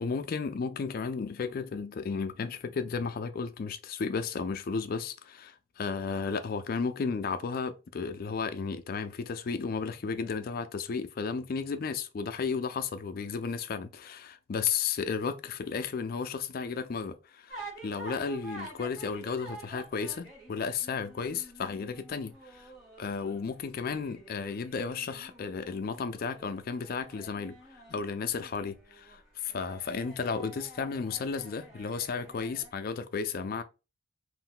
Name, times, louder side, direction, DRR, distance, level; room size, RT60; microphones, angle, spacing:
voice 1, 0.0-22.7 23.0-27.6 27.9-33.6, left 5 dB, 45° left, 0.3 m, -33 dB
sound 1, 17.5-32.7, right 2 dB, 5° right, 0.9 m, -49 dB
2.5 x 2.1 x 3.6 m
head